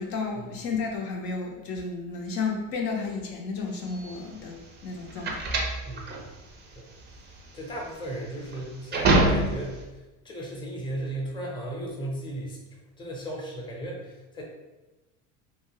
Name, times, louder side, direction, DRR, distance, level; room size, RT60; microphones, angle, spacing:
voice 1, 0.0-5.5, left 4 dB, 60° left, 0 dB, 0.6 m, -32 dB
sound 1, 3.9-9.8, right 2 dB, 25° right, 0.4 m, -26 dB
voice 2, 5.8-6.2 6.7-6.9 7.5-9.8 10.2-14.4, right 1 dB, 10° left, -2 dB, 0.7 m, -36 dB
2.7 x 2.3 x 2.8 m, 1.1 s
supercardioid pair, 105°, 40 cm